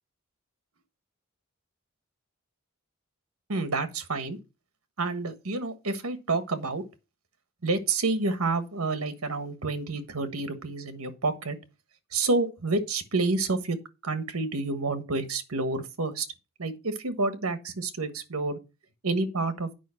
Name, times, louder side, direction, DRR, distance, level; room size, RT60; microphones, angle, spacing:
voice 1, 3.5-4.4 5.0-6.8 7.6-11.6 12.1-13.8 14.0-16.3 16.6-18.6 19.0-19.7, right 3 dB, 85° right, 1.4 m, -29 dB
9.3 x 5.5 x 5.7 m
head